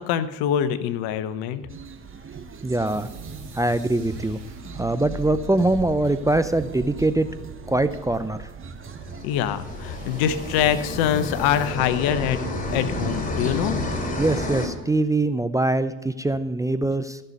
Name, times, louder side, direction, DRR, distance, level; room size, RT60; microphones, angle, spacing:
voice 1, 0.0-1.6 9.2-12.4 12.7-13.8, left 10 dB, 65° left, 13 dB, 1.0 m, -24 dB
sound 1, 1.7-9.2, right 6 dB, 30° right, 1.2 m, -39 dB
voice 2, 2.6-3.1 3.5-4.4 4.8-7.3 7.7-8.5 14.2-17.2, right 2 dB, 10° right, 11 dB, 0.5 m, -23 dB
sound 2, 2.8-11.7, right 1 dB, 45° right, 4.3 m, -43 dB
sound 3, 8.9-14.7, left 1 dB, 20° left, 3.0 m, -30 dB
14.5 x 6.8 x 5.3 m, 1.2 s
hypercardioid pair, 60°, 40 cm